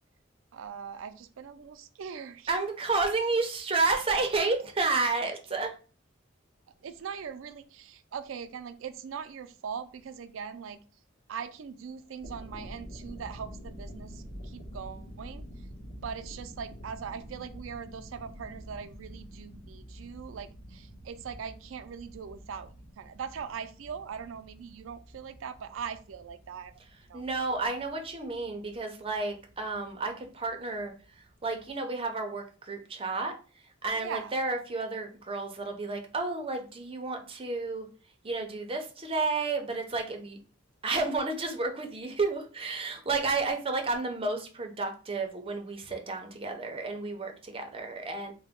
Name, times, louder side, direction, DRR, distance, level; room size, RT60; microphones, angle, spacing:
voice 1, 0.5-2.5 6.8-10.8 11.3-15.4 16.0-26.7 27.1-27.2 33.9-34.4, right 7 dB, 85° right, 0.4 m, -41 dB
voice 2, 2.5-5.7 27.1-30.9 31.4-33.3 33.8-37.9 38.2-40.4 40.8-48.3, right 3 dB, 30° right, 0.6 m, -31 dB
sound 1, 12.0-31.7, equal, 60° left, 1.5 m, -48 dB
3.8 x 2.1 x 3.5 m
head